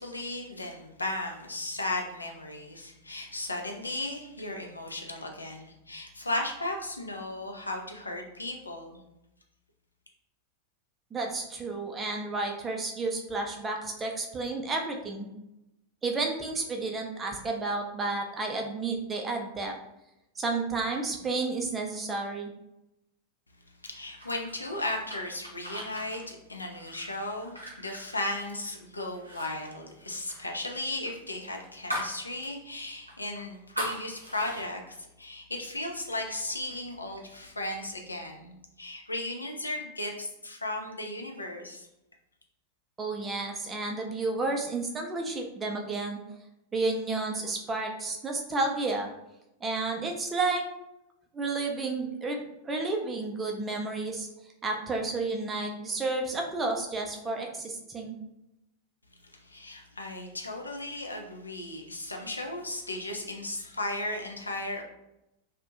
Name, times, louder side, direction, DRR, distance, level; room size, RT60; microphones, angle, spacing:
voice 1, 0.0-9.0 23.8-41.9 59.4-64.8, left 2 dB, 80° left, 2 dB, 0.4 m, -36 dB
voice 2, 11.1-15.3 16.0-19.7 20.4-22.5 43.0-46.2 46.7-49.1 49.6-50.6 51.3-54.3 54.6-58.2, right 3 dB, 20° right, 2 dB, 0.4 m, -31 dB
sound 1, 24.2-28.8 29.1-29.5 29.7-32.2 32.5-32.6 33.1-34.6, equal, 85° right, 0.6 m, -39 dB
2.5 x 2.1 x 2.6 m, 0.89 s
figure-of-eight pair, 90°, 0 cm